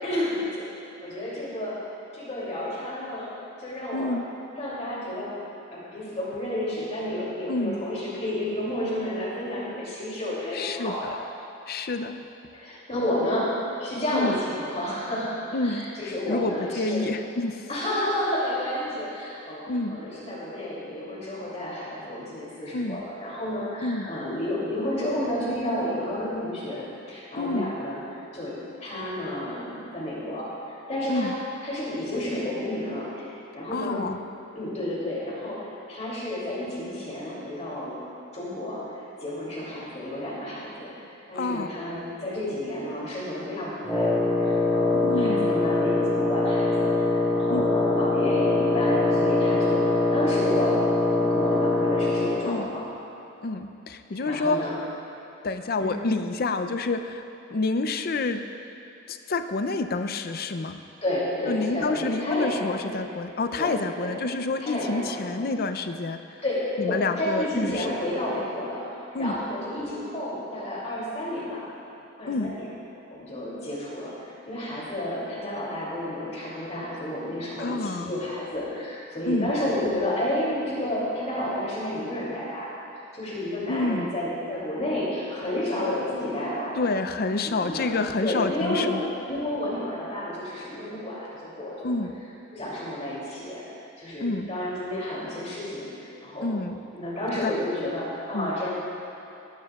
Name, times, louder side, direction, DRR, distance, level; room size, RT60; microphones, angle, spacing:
voice 1, 0.0-0.7 1.0-1.8 2.1-3.3 3.6-4.2 4.6-5.4 5.7-11.1 12.5-17.1 17.7-28.0 28.3-31.3 31.6-33.3 33.5-34.1 34.5-38.0 38.3-38.8 39.2-40.9 41.3-50.8 51.1-52.9 54.2-54.8 55.8-55.9 61.0-63.0 63.6-64.2 64.6-65.3 66.4-71.6 72.2-72.7 73.1-86.9 87.4-87.9 88.2-91.9 92.5-93.6 94.0-95.9 96.2-96.5 96.9-98.7, left 1 dB, 35° left, -7 dB, 3.0 m, -31 dB
voice 2, 3.9-4.3 7.5-7.8 10.5-11.2 11.7-12.2 14.1-14.4 15.5-15.8 16.3-17.6 19.7-20.0 22.7-23.0 23.8-24.1 27.4-27.7 31.1-31.4 33.7-34.2 41.3-41.7 44.9-45.5 47.5-47.7 52.4-52.7 53.4-54.6 55.4-57.2 57.5-58.4 59.1-60.8 61.5-66.2 66.8-67.9 69.1-69.4 72.3-72.5 77.6-78.1 79.3-79.5 83.7-84.1 86.8-89.0 91.8-92.2 94.2-94.5 96.4-96.8 97.4-97.5 98.3-98.5, left 3 dB, 50° left, 8 dB, 0.5 m, -28 dB
Wind instrument woodwind instrument, 43.8-52.4, left 2 dB, 5° left, 1.9 m, -23 dB
18.5 x 11.5 x 2.4 m, 3.0 s
head